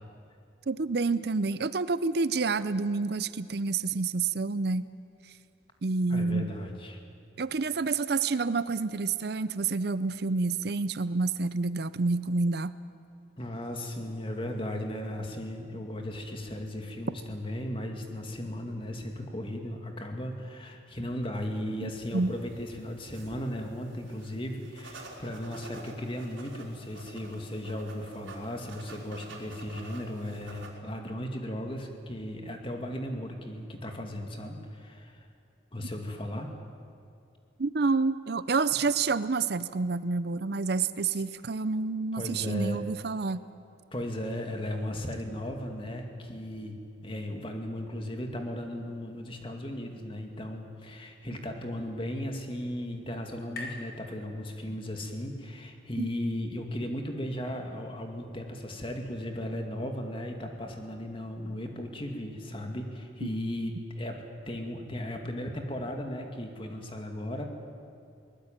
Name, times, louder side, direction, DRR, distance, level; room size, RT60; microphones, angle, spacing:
voice 1, 0.7-4.8 5.8-6.5 7.4-12.7 21.8-22.3 37.6-43.4 56.0-56.1, right 4 dB, 55° right, 15 dB, 0.6 m, -28 dB
voice 2, 6.1-7.0 13.4-35.3 35.7-36.5 42.2-42.8 43.9-46.8 47.0-67.5, left 1 dB, 25° left, 3 dB, 2.4 m, -36 dB
sound 1, 21.9-30.7, right 2 dB, 85° right, 4.6 m, -49 dB
sound 2, 51.2-55.0, left 2 dB, 55° left, 3.7 m, -48 dB
22.5 x 19.5 x 8.9 m, 2.5 s
head